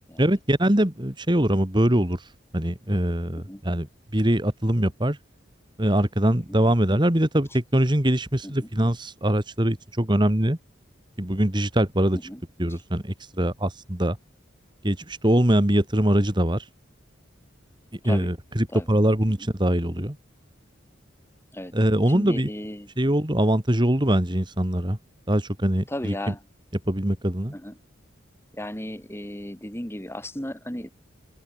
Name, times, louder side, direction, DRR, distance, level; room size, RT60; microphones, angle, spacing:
voice 1, 0.2-2.2 2.5-3.9 4.1-5.2 5.8-10.6 11.2-12.2 12.6-14.2 14.8-16.6 18.0-20.2 21.7-22.5 23.0-25.0 25.3-26.3 26.9-27.5, right 1 dB, 25° right, 2.0 m, -22 dB
voice 2, 22.1-22.9 25.9-26.4 27.5-27.8 28.5-30.9, left 1 dB, 15° left, 3.9 m, -35 dB
open air
head